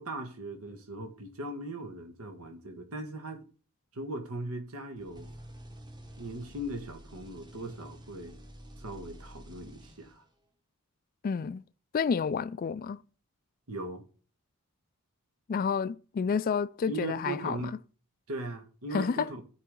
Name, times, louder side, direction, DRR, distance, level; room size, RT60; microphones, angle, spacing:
voice 1, 0.0-3.5 3.9-5.3 6.2-8.4 8.8-10.2 13.7-14.0 16.9-17.7 18.3-19.4, right 2 dB, 75° right, 1.6 m, -39 dB
sound 1, 5.0-10.4, equal, 20° right, 1.2 m, -49 dB
voice 2, 11.2-11.6 11.9-13.0 15.5-17.7 18.9-19.3, left 6 dB, 40° left, 0.3 m, -30 dB
13.5 x 4.9 x 3.7 m
head